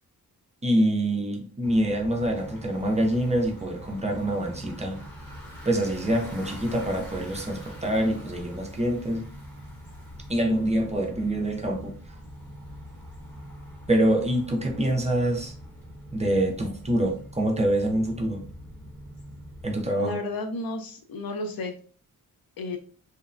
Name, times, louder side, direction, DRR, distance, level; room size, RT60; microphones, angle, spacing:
voice 1, 0.6-5.0 5.7-9.2 10.3-11.9 13.9-15.5 16.1-18.4 19.6-20.2, right 1 dB, 20° right, 1 dB, 0.3 m, -25 dB
Bicycle, 1.6-19.9, equal, 5° left, 0.9 m, -43 dB
voice 2, 20.0-21.8 22.6-22.8, left 2 dB, 75° left, 5 dB, 0.6 m, -32 dB
2.8 x 2.1 x 2.4 m, 0.42 s
wide cardioid pair, 155°, 35 cm